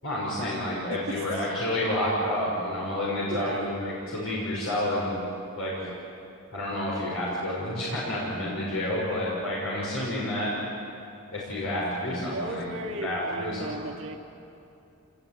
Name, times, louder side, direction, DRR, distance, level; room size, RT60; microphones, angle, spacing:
voice 1, 0.0-5.2 5.5-5.9 6.5-10.5 11.3-13.9, left 1 dB, 70° left, -6 dB, 6.0 m, -29 dB
voice 2, 0.9-1.2 3.3-3.7 12.1-14.2, right 2 dB, 65° right, 2 dB, 1.9 m, -35 dB
28.0 x 20.0 x 9.3 m, 2.7 s
head